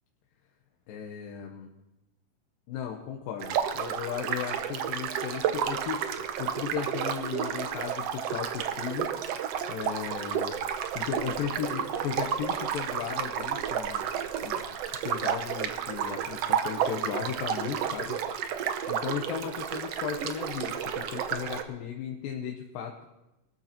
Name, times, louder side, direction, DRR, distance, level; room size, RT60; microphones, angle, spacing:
voice 1, 0.9-1.7 2.7-9.1 9.7-10.6 11.0-14.1 14.4-14.6 14.9-18.2 18.9-23.0, left 8 dB, 90° left, 1 dB, 2.7 m, -36 dB
sound 1, 3.4-21.6, right 8 dB, 75° right, 1.5 m, -31 dB
23.0 x 13.0 x 2.9 m, 0.97 s
omnidirectional pair, 3.9 m